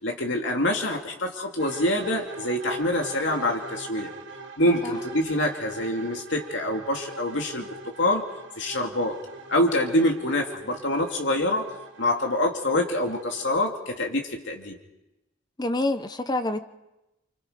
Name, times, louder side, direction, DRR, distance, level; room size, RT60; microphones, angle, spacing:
voice 1, 0.0-4.1 4.6-8.2 8.6-9.2 9.5-11.6 12.0-14.8, left 1 dB, 65° left, 1 dB, 2.5 m, -25 dB
sound 1, 1.6-13.6, right 3 dB, 60° right, 3.2 m, -42 dB
voice 2, 15.6-16.6, left 2 dB, 20° left, 9 dB, 1.0 m, -27 dB
30.0 x 25.5 x 5.1 m, 0.94 s
head